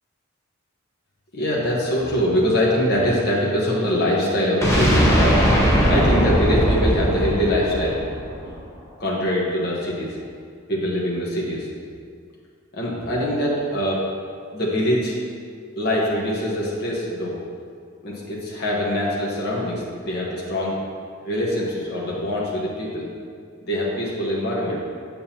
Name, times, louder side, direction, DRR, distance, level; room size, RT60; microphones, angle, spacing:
voice 1, 1.3-5.4 5.9-8.0 8.4-8.5 9.0-10.2 10.7-11.7 12.7-14.1 14.5-15.2 15.8-17.4 18.0-20.8 21.2-23.1 23.6-24.8, equal, 50° left, -5 dB, 1.3 m, -23 dB
sound 1, 4.6-8.6, equal, 15° left, 1.2 m, -19 dB
7.6 x 7.1 x 2.9 m, 2.1 s
head